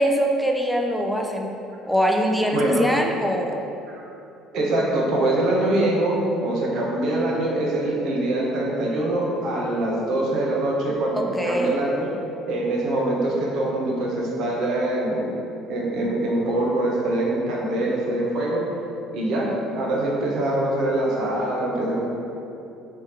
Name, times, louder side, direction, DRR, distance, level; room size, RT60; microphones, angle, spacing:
voice 1, 0.0-1.6 1.8-3.6 11.2-11.8, equal, ahead, 2 dB, 0.4 m, -23 dB
voice 2, 2.5-2.9 3.9-4.0 4.5-12.1 12.5-15.3 15.7-18.6 19.1-22.0, right 1 dB, 65° right, -3 dB, 0.9 m, -24 dB
3.5 x 3.4 x 4.3 m, 2.8 s
cardioid pair, 105°, 0 cm